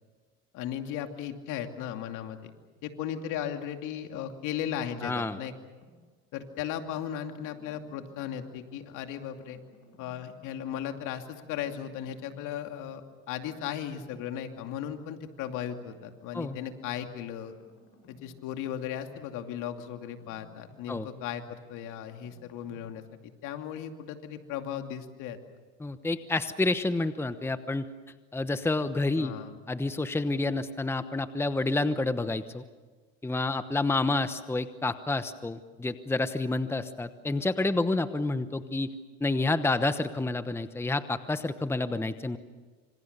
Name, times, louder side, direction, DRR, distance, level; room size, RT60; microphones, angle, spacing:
voice 1, 0.5-2.5 2.8-5.5 6.3-9.6 10.0-17.5 18.1-25.4 29.2-29.6, left 9 dB, 70° left, 6 dB, 2.6 m, -36 dB
sound 1, 3.9-4.9 5.3-7.0 7.4-9.1 9.4-11.2 11.4-13.0 13.4-15.0 15.4-19.4 19.7-23.0, left 3 dB, 45° left, 7.7 m, -59 dB
voice 2, 5.0-5.4 16.3-16.6 20.9-21.1 25.8-27.9 28.3-29.3 29.7-32.6 33.2-38.9 39.2-42.4, left 2 dB, 10° left, 11 dB, 1.0 m, -29 dB
26.5 x 26.0 x 6.8 m, 1.4 s
supercardioid pair, 100°, 32 cm